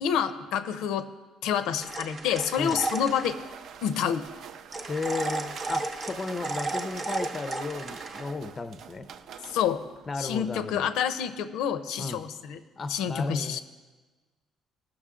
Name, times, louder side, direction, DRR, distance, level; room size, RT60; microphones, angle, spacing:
voice 1, 0.0-1.1 1.4-3.4 3.8-4.3 9.5-9.8 10.2-12.6 12.9-13.6, left 8 dB, 85° left, 11 dB, 0.5 m, -28 dB
sound 1, 1.8-3.4 4.7-8.2, right 2 dB, 25° right, 0.8 m, -34 dB
sound 2, 1.8-10.5, right 8 dB, 55° right, 0.4 m, -45 dB
voice 2, 4.9-9.1 10.1-10.9 12.0-12.2 12.8-13.6, left 3 dB, 25° left, 10 dB, 0.4 m, -34 dB
17.5 x 6.2 x 3.7 m, 1.3 s
cardioid pair, 155°, 0 cm